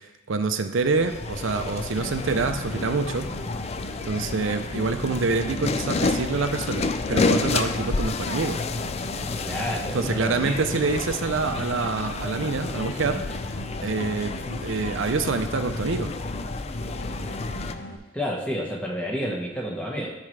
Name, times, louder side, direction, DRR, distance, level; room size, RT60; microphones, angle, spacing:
voice 1, 0.3-3.3 4.0-8.6 9.9-13.2 13.8-16.1, right 4 dB, 75° right, 8 dB, 0.6 m, -26 dB
sound 1, 0.8-17.7, left 3 dB, 30° left, 0.3 m, -30 dB
sound 2, 2.0-18.0, equal, 45° left, 1.1 m, -39 dB
voice 2, 9.4-10.6 18.1-20.1, equal, 5° left, -3 dB, 1.3 m, -30 dB
13.5 x 4.5 x 3.3 m, 1.2 s
head